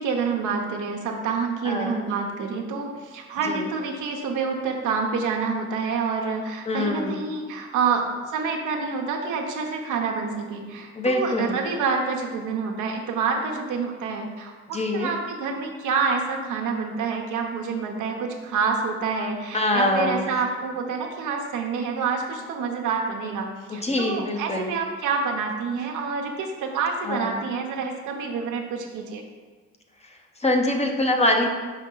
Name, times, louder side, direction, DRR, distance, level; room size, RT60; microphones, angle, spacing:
voice 1, 0.0-29.2, right 5 dB, 80° right, 2 dB, 1.0 m, -27 dB
voice 2, 1.6-2.0 3.4-3.7 6.7-7.2 10.9-11.6 14.7-15.1 19.5-20.3 23.7-24.7 27.0-27.3 30.4-31.5, left 1 dB, 20° left, 2 dB, 0.9 m, -24 dB
5.5 x 5.3 x 3.9 m, 1.4 s
cardioid pair, 90°, 30 cm